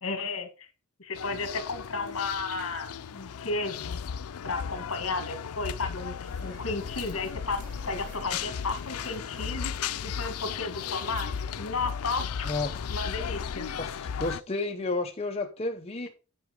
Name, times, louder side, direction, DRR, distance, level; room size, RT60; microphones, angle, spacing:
voice 1, 0.0-0.7 1.0-4.0 4.4-7.6 7.9-9.7 10.0-12.5 12.9-13.7, left 3 dB, 70° left, 1.9 m, -33 dB
sound 1, 1.2-14.4, left 7 dB, 90° left, 0.4 m, -35 dB
sound 2, 6.2-11.6, right 1 dB, 40° right, 3.0 m, -50 dB
voice 2, 12.4-12.8 13.7-16.1, left 2 dB, 30° left, 0.8 m, -32 dB
9.0 x 5.1 x 5.1 m
head